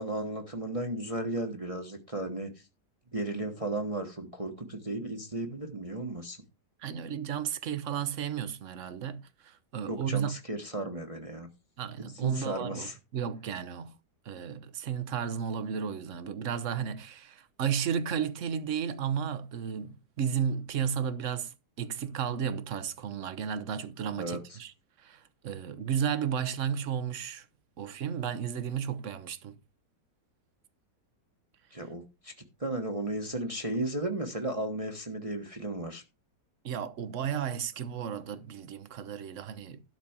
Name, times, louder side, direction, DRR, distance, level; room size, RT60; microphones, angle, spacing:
voice 1, 0.0-2.5 3.1-6.4 9.9-11.5 12.1-13.0 24.2-24.4 31.7-32.3 32.6-36.0, right 1 dB, 20° right, 1.3 m, -34 dB
voice 2, 6.8-10.4 11.8-14.0 14.2-24.7 25.0-27.4 27.8-29.6 36.6-39.8, right 8 dB, 50° right, 1.2 m, -33 dB
12.5 x 4.3 x 7.3 m
omnidirectional pair, 1.9 m